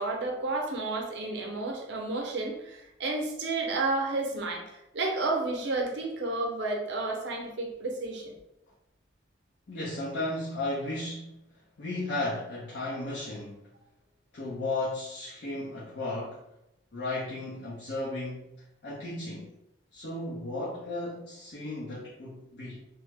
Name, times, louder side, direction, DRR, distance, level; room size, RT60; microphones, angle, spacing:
voice 1, 0.0-8.3, right 2 dB, 70° right, 2 dB, 0.6 m, -31 dB
voice 2, 9.7-11.4 11.8-13.6 14.3-16.4 16.9-18.5 18.8-19.5 19.9-22.8, left 2 dB, 60° left, -7 dB, 0.6 m, -34 dB
3.0 x 2.0 x 3.4 m, 0.85 s
head